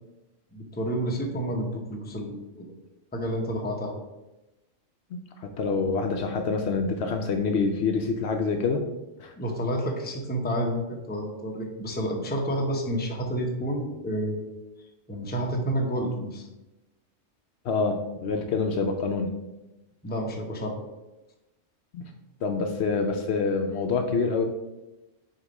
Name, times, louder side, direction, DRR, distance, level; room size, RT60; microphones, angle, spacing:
voice 1, 0.5-2.6 3.1-3.9 9.4-14.5 15.1-16.5 20.0-20.8, equal, 10° left, 1 dB, 0.6 m, -30 dB
voice 2, 5.1-8.8 9.2-9.3 17.6-19.3 21.9-22.0 22.4-24.4, left 4 dB, 65° left, 5 dB, 0.8 m, -26 dB
6.5 x 3.0 x 5.2 m, 1.0 s
omnidirectional pair, 1.3 m